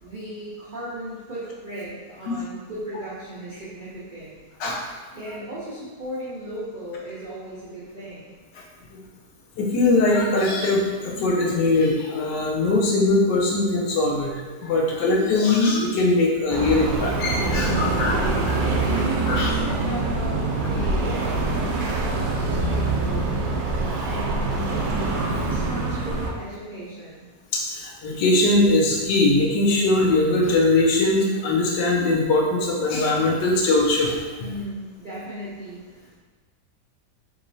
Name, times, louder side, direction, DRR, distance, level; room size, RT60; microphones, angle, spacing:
voice 1, 0.0-4.4 5.2-8.3 17.5-23.6 24.0-25.1 25.3-27.2 34.4-36.2, right 1 dB, 70° right, -9 dB, 0.4 m, -36 dB
voice 2, 9.6-18.1 18.5-18.6 18.9-19.5 27.5-34.2, left 2 dB, 90° left, -2 dB, 1.3 m, -21 dB
sound 1, 16.5-26.3, right 3 dB, 90° right, 1.2 m, -24 dB
3.6 x 3.0 x 2.6 m, 1.4 s
omnidirectional pair, 1.8 m